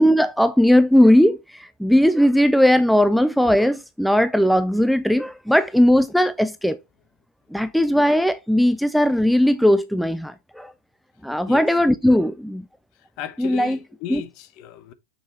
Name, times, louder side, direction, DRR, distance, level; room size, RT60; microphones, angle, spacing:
voice 1, 0.0-6.8 7.5-10.7 11.2-12.6 13.4-13.8 14.1-14.2, equal, ahead, 0.4 m, -18 dB
voice 2, 13.2-14.9, left 10 dB, 45° left, 0.9 m, -35 dB
6.6 x 6.1 x 2.8 m
supercardioid pair, 140°, 0 cm